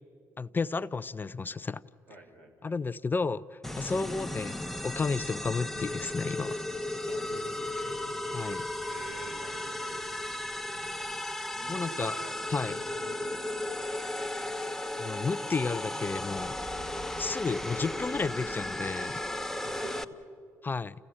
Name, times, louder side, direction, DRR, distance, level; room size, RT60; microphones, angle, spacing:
voice 1, 0.4-1.8 2.6-6.6 8.3-8.6 11.7-12.2 12.5-12.8 15.0-16.5 17.2-19.2 20.6-20.9, left 4 dB, 30° left, 15 dB, 0.6 m, -32 dB
voice 2, 2.1-2.8 7.1-8.0 8.8-11.2 11.6-12.4 12.7-14.0 17.0-17.2 19.6-20.1, right 3 dB, 75° right, 0 dB, 4.2 m, -48 dB
sound 1, 3.6-20.0, left 1 dB, 5° left, 0.9 m, -35 dB
29.5 x 15.5 x 8.8 m, 2.5 s
hypercardioid pair, 60°, 7 cm